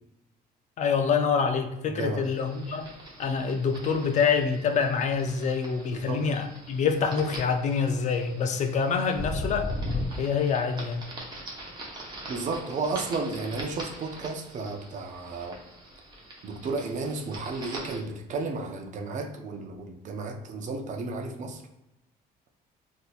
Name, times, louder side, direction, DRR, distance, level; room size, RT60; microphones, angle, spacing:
voice 1, 0.8-2.9 3.2-11.0, left 5 dB, 45° left, 0.4 m, -26 dB
voice 2, 1.9-2.2 5.9-6.2 12.3-15.6 16.4-21.6, right 3 dB, 45° right, 0.5 m, -33 dB
sound 1, 2.2-18.0, equal, 25° right, 0.9 m, -40 dB
3.9 x 2.6 x 2.3 m
cardioid pair, 110°, 17 cm